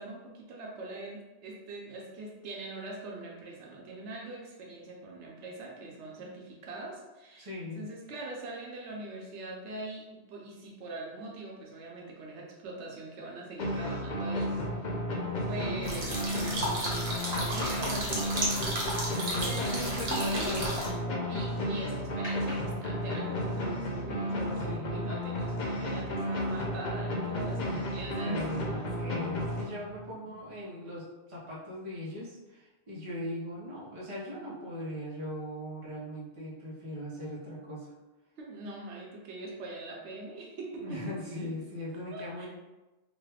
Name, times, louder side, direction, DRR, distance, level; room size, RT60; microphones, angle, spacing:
voice 1, 0.0-7.5 7.7-14.5 15.5-18.6 20.1-20.5 21.3-28.4 28.7-28.9 38.4-41.2 42.1-42.5, right 2 dB, 90° right, -1 dB, 1.0 m, -42 dB
voice 2, 7.4-7.9 19.1-20.7 24.6-24.9 27.6-37.9 40.7-42.5, left 1 dB, 30° right, -7 dB, 0.9 m, -39 dB
sound 1, 13.6-30.1, equal, 50° left, 0.6 m, -33 dB
sound 2, 15.8-20.9, right 1 dB, 65° right, 1.0 m, -33 dB
sound 3, 17.2-21.6 22.2-23.3 23.8-23.9 24.3-24.7, left 1 dB, 35° left, 1.3 m, -44 dB
3.0 x 2.3 x 3.3 m, 1.1 s
omnidirectional pair, 1.1 m